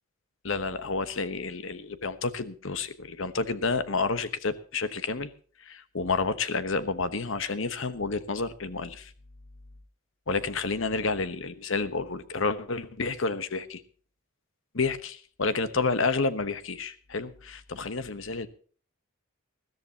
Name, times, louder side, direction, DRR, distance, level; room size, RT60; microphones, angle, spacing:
voice 1, 0.4-5.3 5.6-9.1 10.3-13.8 14.8-15.1 15.4-18.5, left 4 dB, 65° left, 12 dB, 1.1 m, -30 dB
21.0 x 14.0 x 2.9 m, 0.42 s
head